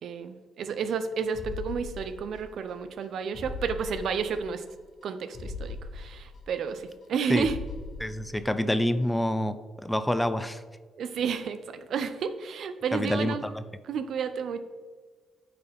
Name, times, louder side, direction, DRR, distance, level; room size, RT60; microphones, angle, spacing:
voice 1, 0.0-4.6 5.0-7.6 11.0-13.5 13.8-14.6, right 6 dB, 65° right, 10 dB, 0.5 m, -31 dB
sound 1, 1.3-2.7 3.0-3.1 3.3-4.7 5.0-5.1 5.3-7.1 7.3-8.7 9.0-9.1, left 3 dB, 50° left, 0.9 m, -40 dB
voice 2, 8.0-10.6 12.9-13.6, left 1 dB, 5° left, 11 dB, 0.4 m, -27 dB
8.7 x 4.8 x 3.5 m, 1.5 s
cardioid pair, 90°, 0 cm